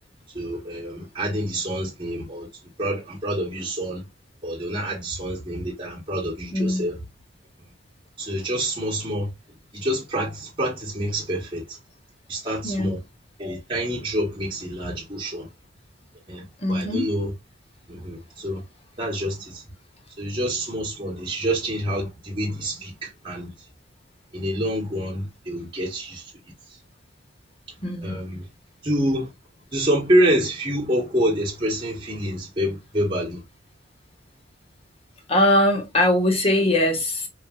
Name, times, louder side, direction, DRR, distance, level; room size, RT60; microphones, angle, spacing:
voice 1, 0.3-2.5 2.8-4.1 4.4-7.0 8.2-9.3 9.7-11.8 12.3-13.0 13.4-15.5 16.3-17.3 17.9-18.6 19.0-19.6 20.2-23.5 24.3-26.3 28.0-28.5 28.8-29.3 29.7-33.4, right 1 dB, 25° right, 1.1 m, -27 dB
voice 2, 6.5-6.9 12.6-13.0 16.6-17.0 27.8-28.2 35.3-37.3, left 1 dB, 30° left, 0.9 m, -21 dB
3.1 x 2.4 x 2.3 m
head